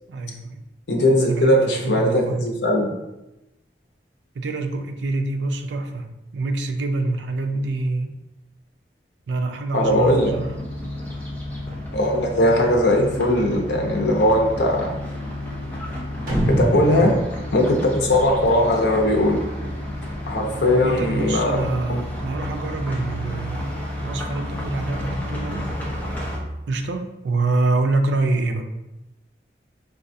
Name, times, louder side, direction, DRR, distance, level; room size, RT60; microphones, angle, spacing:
voice 1, 0.1-0.6 1.2-2.4 4.3-8.2 9.3-10.6 16.9-17.2 20.7-25.7 26.7-28.6, right 2 dB, 85° right, 6 dB, 0.4 m, -26 dB
voice 2, 0.9-2.9 9.7-10.3 11.9-14.9 16.5-17.1 17.5-19.4 20.3-21.6 21.9-22.0, left 1 dB, 80° left, 1 dB, 0.7 m, -19 dB
sound 1, 9.8-26.4, left 1 dB, 10° left, 0.5 m, -31 dB
sound 2, 16.3-18.8, equal, 50° right, 1.0 m, -25 dB
4.9 x 2.3 x 2.6 m, 0.96 s
head